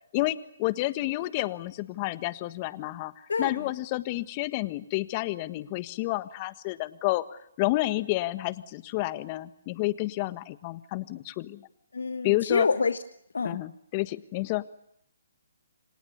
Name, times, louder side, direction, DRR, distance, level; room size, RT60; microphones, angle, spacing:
voice 1, 0.1-3.1 3.4-11.7 12.2-12.7 13.4-14.7, left 18 dB, 30° left, 13 dB, 1.5 m, -30 dB
voice 2, 11.9-13.0 13.3-13.6, left 4 dB, 75° left, 10 dB, 1.4 m, -26 dB
29.5 x 26.0 x 7.1 m, 0.77 s
figure-of-eight pair, 140°, 0 cm